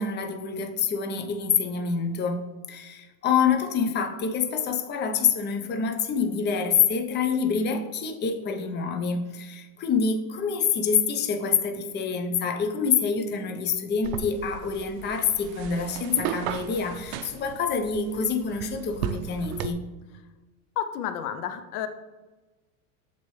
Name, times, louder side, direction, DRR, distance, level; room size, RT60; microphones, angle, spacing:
voice 1, 0.0-19.8, left 6 dB, 25° left, 4 dB, 0.6 m, -26 dB
sound 1, 14.0-19.7, right 9 dB, 70° right, 0.5 m, -35 dB
voice 2, 20.8-21.9, left 9 dB, 80° left, 10 dB, 0.7 m, -31 dB
7.2 x 4.1 x 3.2 m, 1.2 s
supercardioid pair, 110°, 44 cm